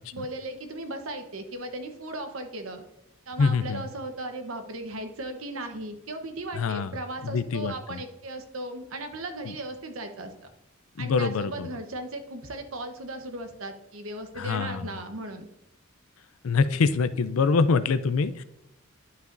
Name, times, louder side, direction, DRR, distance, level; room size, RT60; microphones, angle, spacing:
voice 1, 0.1-2.8 3.3-10.3 11.0-15.5, right 1 dB, 75° right, 6 dB, 1.0 m, -37 dB
voice 2, 3.4-3.8 6.5-7.0 7.2-8.0 9.4-9.5 11.0-11.7 14.4-14.9 16.4-18.4, left 4 dB, 80° left, 13 dB, 0.5 m, -25 dB
11.5 x 5.7 x 2.6 m, 0.84 s
head